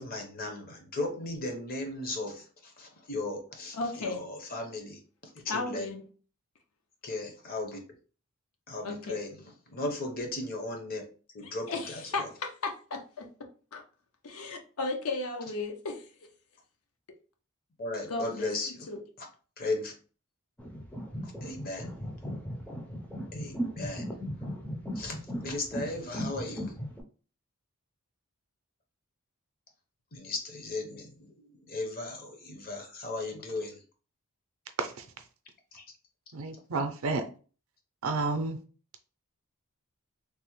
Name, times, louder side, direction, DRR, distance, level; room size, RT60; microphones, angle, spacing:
voice 1, 0.0-5.0 5.4-5.8 7.0-7.8 8.7-9.3 9.7-11.0 11.3-12.0 17.8-18.9 19.6-19.9 21.2-22.0 23.3-24.2 25.0-26.7 30.1-31.3 31.6-33.8 35.7-35.8, left 2 dB, 40° left, 0.7 m, -36 dB
voice 2, 3.7-4.2 5.5-6.1 8.8-9.2 11.4-13.8 14.2-16.1 17.1-17.2 18.1-18.6 18.9-19.0, left 3 dB, 80° left, 0.6 m, -35 dB
sound 1, 20.6-27.0, equal, 5° left, 0.3 m, -37 dB
voice 3, 36.3-37.3 38.0-38.6, right 3 dB, 70° right, 0.5 m, -31 dB
3.3 x 2.0 x 3.0 m
head